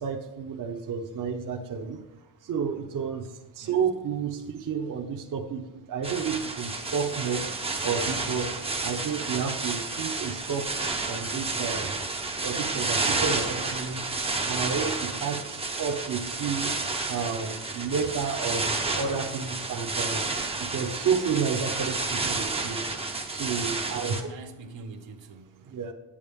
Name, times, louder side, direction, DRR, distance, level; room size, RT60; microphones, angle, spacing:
voice 1, 0.0-2.0 2.4-7.4 7.8-8.5 8.8-10.7 11.1-11.9 12.4-14.1 14.4-16.7 17.1-20.3 20.6-22.8 23.3-24.1 25.6-25.9, right 6 dB, 45° right, 0.8 m, -31 dB
sound 1, 6.0-24.2, right 3 dB, 15° right, 0.6 m, -31 dB
voice 2, 14.8-15.4 23.9-25.7, right 3 dB, 80° right, 1.0 m, -44 dB
9.7 x 8.5 x 3.5 m
wide cardioid pair, 175°, 44 cm